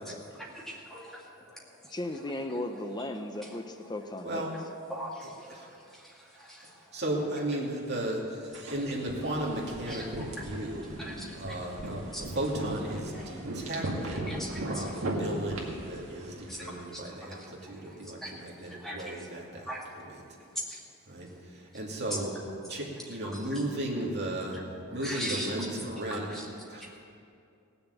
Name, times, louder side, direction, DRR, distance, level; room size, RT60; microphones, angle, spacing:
voice 1, 0.1-2.0 3.2-3.9 4.5-4.6 4.9-7.0 8.6-8.7 9.9-12.3 13.1-13.4 13.8-14.0 14.3-15.1 16.5-19.4 19.6-20.1 20.7-20.8 22.1-22.2 23.2-23.6 25.0-25.7 26.1-26.5 26.8-27.1, equal, ahead, -4 dB, 2.1 m, -42 dB
voice 2, 1.9-4.5, left 1 dB, 20° left, 6 dB, 0.6 m, -36 dB
voice 3, 6.9-11.0 11.4-12.0 12.3-14.4 14.7-19.7 21.1-22.3 22.7-24.6 24.9-26.3 26.7-26.8, right 1 dB, 50° right, -3 dB, 2.6 m, -35 dB
sound 1, 8.5-16.7, right 1 dB, 65° right, 2.0 m, -38 dB
17.5 x 6.9 x 8.1 m, 2.5 s
head